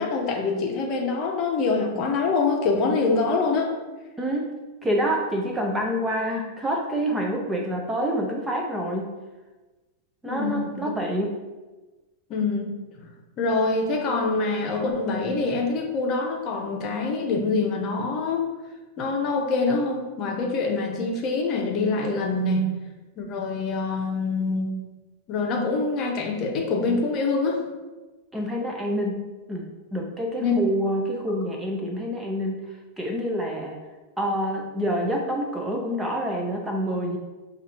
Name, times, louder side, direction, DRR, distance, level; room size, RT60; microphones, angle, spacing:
voice 1, 0.0-3.8 10.2-10.8 12.3-13.1 13.4-18.5 19.0-22.7 23.2-24.7 25.3-27.6 30.4-30.6, left 3 dB, 35° left, 2 dB, 0.7 m, -25 dB
voice 2, 4.2-4.5 4.8-9.1 10.2-11.3 28.3-29.6 29.9-32.6 33.0-33.8 34.2-37.2, equal, 5° right, 0 dB, 0.4 m, -27 dB
6.5 x 2.5 x 2.9 m, 1.2 s
supercardioid pair, 150°, 0 cm